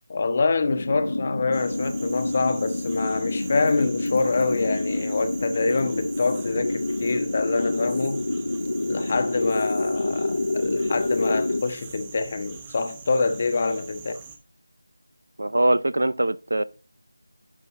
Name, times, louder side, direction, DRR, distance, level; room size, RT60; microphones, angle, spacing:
voice 1, 0.1-8.3 8.8-14.1, left 3 dB, 30° left, 0.8 m, -25 dB
sound 1, 0.7-11.6, left 2 dB, 65° left, 0.7 m, -28 dB
sound 2, 1.5-14.4, right 6 dB, 15° right, 0.7 m, -43 dB
voice 2, 15.4-16.6, right 1 dB, 70° right, 0.6 m, -22 dB
11.0 x 5.7 x 3.1 m
figure-of-eight pair, 170°, 0 cm